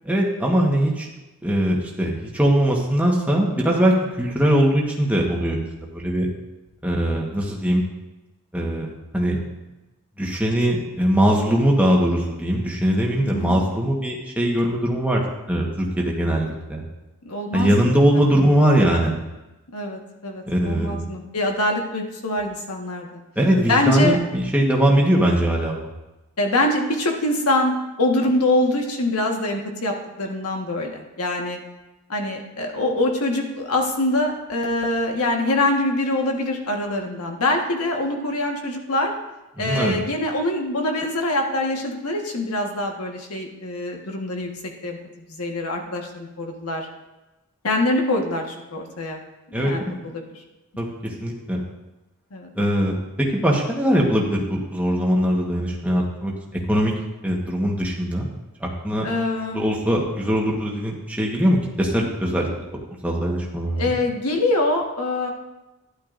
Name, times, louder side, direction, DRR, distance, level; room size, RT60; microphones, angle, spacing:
voice 1, 0.0-1.1 1.4-5.6 5.9-6.3 6.8-7.8 8.5-9.4 10.2-15.2 15.5-15.7 16.0-16.8 17.5-19.2 20.5-21.0 23.4-25.9 39.6-39.9 49.5-49.7 50.8-51.6 52.5-53.0 53.3-56.3 56.7-56.9 57.2-58.3 58.6-59.1 59.5-62.5 63.0-64.0, equal, 5° right, -2 dB, 1.3 m, -21 dB
voice 2, 13.2-13.5 17.2-18.0 19.7-23.2 23.7-24.2 26.4-31.6 32.1-39.1 39.6-44.5 44.8-45.0 45.3-46.9 47.6-49.2 49.6-50.4 52.3-52.5 59.0-59.6 63.7-65.3, left 1 dB, 85° left, 2 dB, 1.5 m, -24 dB
12.0 x 10.5 x 2.6 m, 1.0 s
head